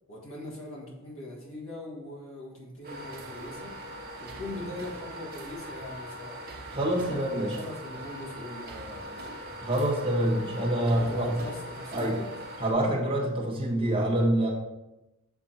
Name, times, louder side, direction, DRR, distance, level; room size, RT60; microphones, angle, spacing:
voice 1, 0.1-3.8 4.2-6.4 6.9-9.3 10.8-12.3, left 2 dB, 65° left, -3 dB, 1.8 m, -41 dB
sound 1, 2.8-12.7, right 1 dB, 45° right, 1.0 m, -41 dB
voice 2, 6.7-7.6 9.6-11.4 11.9-12.2 12.6-14.5, right 1 dB, 25° right, -3 dB, 1.5 m, -26 dB
7.0 x 3.7 x 4.3 m, 0.97 s
head